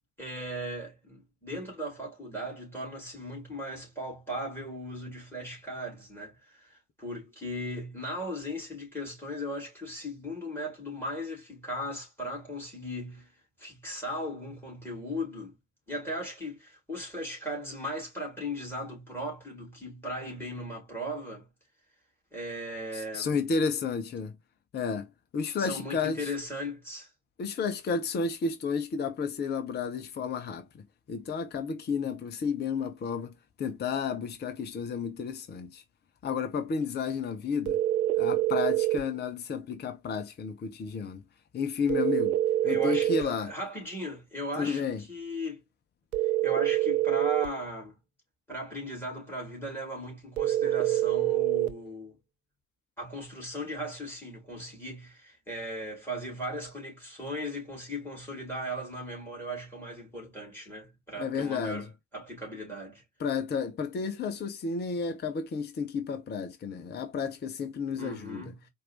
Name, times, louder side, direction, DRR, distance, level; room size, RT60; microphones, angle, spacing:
voice 1, 0.2-13.3 13.6-15.5 15.9-21.5 22.3-23.4 25.6-27.1 42.6-45.6 46.4-47.9 48.5-52.2 53.0-61.9 62.1-63.0 67.9-68.6, equal, 5° left, 2.9 m, -37 dB
voice 2, 22.9-24.3 24.7-26.3 27.4-35.8 36.2-37.8 38.2-41.2 41.5-43.5 44.6-45.0 61.2-61.9 63.2-68.5, left 5 dB, 25° left, 0.8 m, -32 dB
sound 1, 37.7-39.1 41.9-43.3 46.1-47.5 50.4-51.8, right 14 dB, 75° right, 0.7 m, -26 dB
4.6 x 2.6 x 3.0 m
figure-of-eight pair, 60°, 43 cm